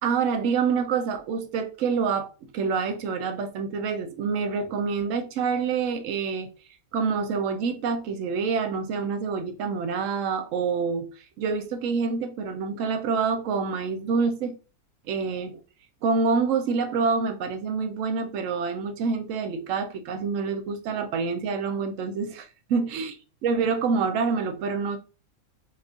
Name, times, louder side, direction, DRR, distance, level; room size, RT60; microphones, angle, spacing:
voice 1, 0.0-2.3 2.5-6.5 6.9-11.1 11.4-14.6 15.1-15.6 16.0-23.1 23.4-25.0, right 5 dB, 70° right, 0.9 m, -27 dB
4.3 x 2.4 x 2.4 m
omnidirectional pair, 1.5 m